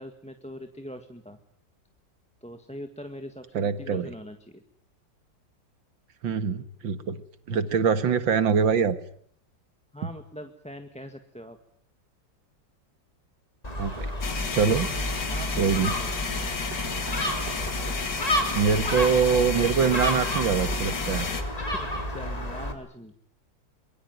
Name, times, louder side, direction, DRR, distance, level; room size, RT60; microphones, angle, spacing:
voice 1, 0.0-1.4 2.4-4.6 9.9-11.6 15.3-16.1 21.6-23.1, equal, 5° left, 7 dB, 1.5 m, -42 dB
voice 2, 3.5-4.1 6.2-7.2 7.5-9.0 13.8-14.1 14.5-14.9 15.6-15.9 18.5-21.3, right 6 dB, 80° right, 12 dB, 2.3 m, -24 dB
Gull seagull, 13.6-22.7, equal, 20° left, 3.4 m, -31 dB
sound 1, 14.2-21.4, left 5 dB, 60° left, 3.0 m, -32 dB
sound 2, 16.5-21.5, right 5 dB, 65° right, 2.8 m, -47 dB
24.0 x 22.5 x 9.4 m, 0.62 s
omnidirectional pair, 2.1 m